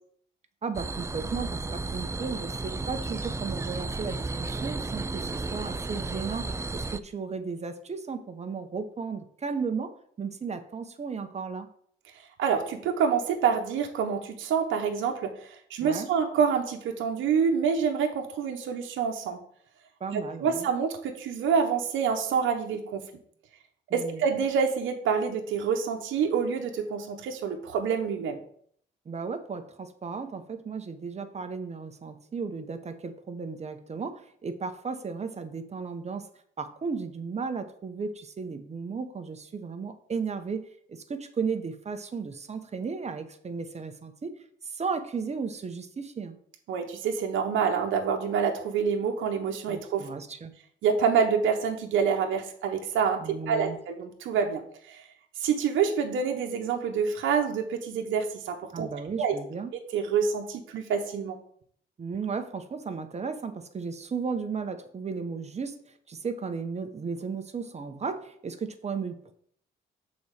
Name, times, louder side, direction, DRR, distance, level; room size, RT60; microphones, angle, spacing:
voice 1, 0.6-9.9 10.2-11.7 15.8-16.1 20.0-20.7 23.9-24.2 29.1-36.3 36.6-44.3 44.6-46.4 49.7-50.5 53.2-53.8 58.7-59.7 62.0-65.8 66.1-69.3, right 5 dB, 35° right, 8 dB, 1.0 m, -35 dB
sound 1, 0.7-7.0, right 3 dB, 15° right, 0.4 m, -33 dB
voice 2, 12.4-19.4 20.1-23.1 23.9-28.4 46.7-50.0 50.8-54.6 54.9-55.0 55.4-58.9 59.2-59.4 59.9-61.4, right 6 dB, 80° right, 3 dB, 1.0 m, -27 dB
6.9 x 4.2 x 6.5 m, 0.62 s
cardioid pair, 90°, 20 cm